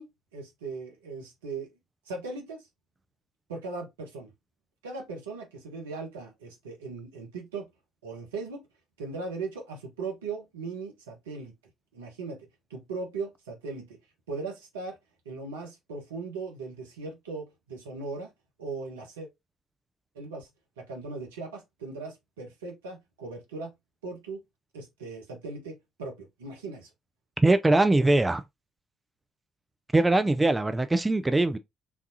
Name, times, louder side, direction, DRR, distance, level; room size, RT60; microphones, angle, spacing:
voice 1, 0.0-1.7 2.1-2.7 3.5-4.3 4.8-7.7 8.0-8.7 9.0-11.6 11.9-14.0 14.3-15.0 15.2-18.3 18.6-19.3 20.1-20.5 20.8-23.7 24.0-24.4 24.7-26.9, right 3 dB, 80° right, 1.2 m, -38 dB
voice 2, 27.4-28.4 29.9-31.6, right 2 dB, 15° right, 0.5 m, -22 dB
4.6 x 3.5 x 2.7 m
figure-of-eight pair, 50°, 0 cm